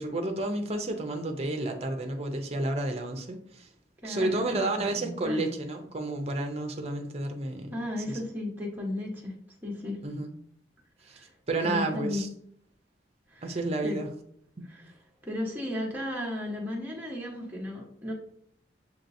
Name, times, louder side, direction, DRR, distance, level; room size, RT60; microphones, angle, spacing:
voice 1, 0.0-3.7 4.0-7.7 8.1-8.2 10.0-10.3 11.1-11.2 11.5-12.3 13.4-14.1 14.6-14.7, right 2 dB, 35° right, 5 dB, 0.6 m, -31 dB
voice 2, 4.0-4.7 5.0-5.5 7.7-9.3 9.6-10.0 11.1-11.3 11.6-12.3 13.3-14.0 14.7-14.9 15.2-18.1, left 1 dB, 10° right, -2 dB, 1.1 m, -35 dB
6.9 x 3.0 x 2.6 m, 0.67 s
head